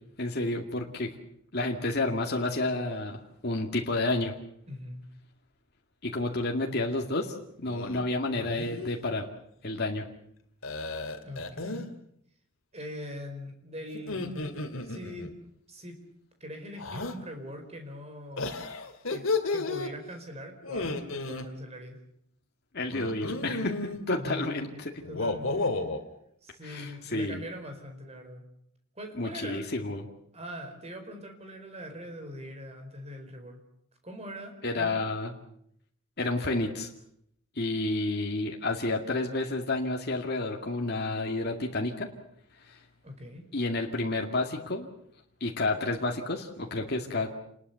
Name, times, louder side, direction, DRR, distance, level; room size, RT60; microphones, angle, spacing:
voice 1, 0.2-1.2 1.5-4.3 6.0-9.3 9.6-10.0 22.7-25.0 26.6-27.4 29.1-30.0 34.6-35.3 36.2-36.9 37.6-42.1 42.6-42.8 43.5-44.9 45.4-47.3, left 2 dB, 45° left, 1 dB, 2.3 m, -30 dB
voice 2, 4.7-5.0 11.2-11.9 12.7-15.3 15.7-16.0 16.4-18.6 19.1-22.0 24.1-24.5 25.1-25.8 26.4-28.4 28.9-29.6 30.3-33.6 34.0-35.0 43.0-43.4, equal, 30° right, 5 dB, 4.7 m, -42 dB
sound 1, 7.7-8.0 8.4-8.9 10.6-11.9 13.9-15.3 16.8-17.2 18.4-19.9 20.6-21.5 22.9-24.0 25.0-26.0, left 3 dB, 65° left, 2.5 m, -33 dB
28.5 x 20.5 x 7.0 m, 0.72 s
head